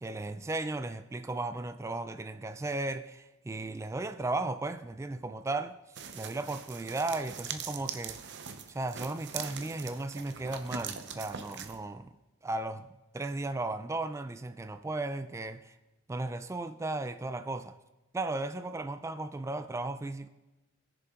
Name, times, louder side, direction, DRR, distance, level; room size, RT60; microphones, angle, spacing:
voice 1, 0.0-5.8 6.1-8.2 8.7-12.1 12.4-12.9 13.1-15.7 16.1-17.8 18.1-20.3, right 2 dB, 15° right, 0.3 m, -35 dB
sound 1, 5.9-11.8, right 7 dB, 55° right, 0.7 m, -42 dB
18.0 x 6.8 x 3.7 m
head